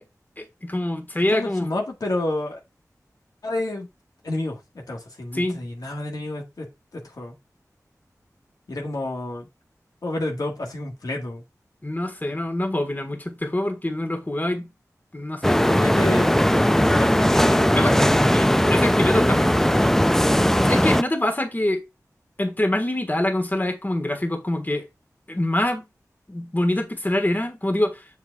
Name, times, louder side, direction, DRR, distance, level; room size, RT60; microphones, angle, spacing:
voice 1, 0.4-1.7 5.3-5.6 11.8-14.7 15.1-15.8 17.7-17.9 18.3-20.0 20.6-21.8 22.4-24.8 25.3-25.8 26.3-28.1, left 1 dB, 30° left, 1.6 m, -25 dB
voice 2, 1.3-2.6 3.4-3.9 4.2-6.7 6.9-7.3 8.7-9.5 10.0-11.4 15.7-18.2 20.5-20.8, left 2 dB, 80° left, 1.6 m, -30 dB
sound 1, 15.4-21.0, equal, 5° left, 0.4 m, -18 dB
7.2 x 6.8 x 2.4 m
cardioid pair, 40°, 6 cm